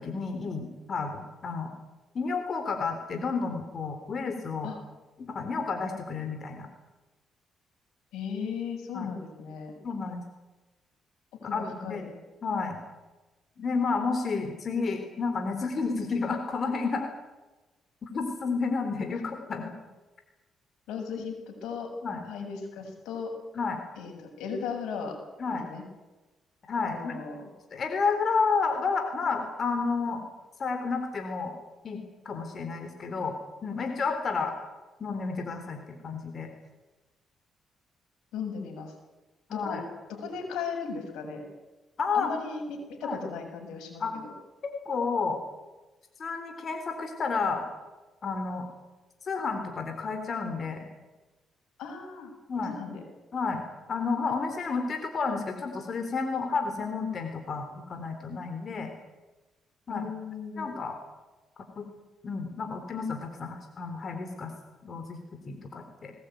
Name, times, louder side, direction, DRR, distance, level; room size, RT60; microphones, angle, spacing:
voice 1, 0.0-1.7 2.1-4.7 5.2-6.7 8.9-9.1 9.8-10.2 11.4-12.0 12.4-12.8 13.6-17.1 18.0-19.7 22.0-22.2 23.5-23.8 25.4-25.6 26.7-27.2 27.7-30.2 30.6-31.5 31.8-33.4 33.6-34.6 35.0-36.5 39.5-39.8 42.0-42.3 43.0-43.2 44.0-44.2 44.6-45.4 46.2-47.7 48.2-48.7 49.2-50.9 52.5-52.8 53.3-58.9 59.9-60.1 60.6-61.0 61.8-61.9 62.2-64.5 64.8-65.2 65.4-66.1, left 4 dB, 45° left, 5 dB, 3.8 m, -31 dB
voice 2, 8.1-9.7 11.4-12.1 20.9-21.9 22.2-23.3 24.0-25.2 25.5-25.8 26.8-27.4 38.3-38.9 39.5-39.8 40.1-41.4 42.1-44.0 51.8-52.3 52.7-53.0 59.9-60.8, left 5 dB, 85° left, 3 dB, 7.2 m, -36 dB
21.0 x 19.5 x 9.4 m, 1.1 s
cardioid pair, 90°, 0 cm